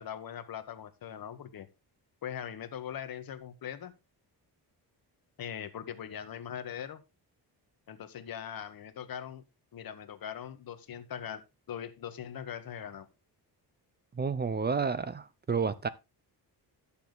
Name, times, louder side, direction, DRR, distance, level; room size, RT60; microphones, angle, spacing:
voice 1, 0.0-1.7 2.2-3.9 5.4-7.0 7.9-9.4 9.7-11.4 11.7-13.1, left 9 dB, 60° left, 1.3 m, -41 dB
voice 2, 14.2-15.9, right 5 dB, 25° right, 0.5 m, -30 dB
11.5 x 7.1 x 3.8 m
wide cardioid pair, 160°, 40 cm